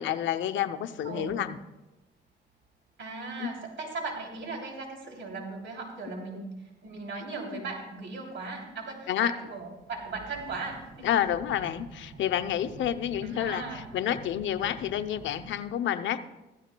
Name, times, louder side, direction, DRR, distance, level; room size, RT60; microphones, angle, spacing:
voice 1, 0.0-1.6 6.3-6.5 7.2-7.6 9.1-9.3 11.0-16.2, left 10 dB, 70° left, 10 dB, 0.7 m, -29 dB
voice 2, 1.0-1.5 3.0-6.5 6.8-11.1 13.2-13.8, right 3 dB, 70° right, 1 dB, 3.0 m, -38 dB
sound 1, 2.3-2.4 2.7-3.3 3.8-3.9 4.5-4.6 5.4-5.8 6.5-6.6 6.9-15.7, right 4 dB, 50° right, 1.8 m, -49 dB
15.0 x 13.5 x 2.2 m, 1.0 s
cardioid pair, 90°, 20 cm